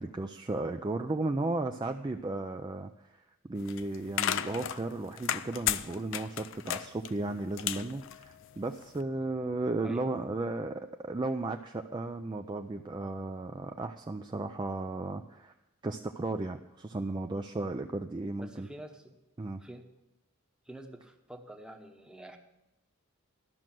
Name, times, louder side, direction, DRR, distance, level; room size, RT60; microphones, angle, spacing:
voice 1, 0.0-2.9 3.4-15.5 15.8-18.7 19.4-19.6, right 2 dB, 20° right, 5 dB, 0.3 m, -35 dB
sound 1, 3.6-8.9, left 10 dB, 60° left, 0.4 m, -34 dB
voice 2, 9.8-10.2 18.4-19.2 19.6-19.8 20.7-22.4, right 1 dB, 5° right, 4 dB, 0.9 m, -47 dB
12.5 x 6.3 x 7.6 m, 0.97 s
head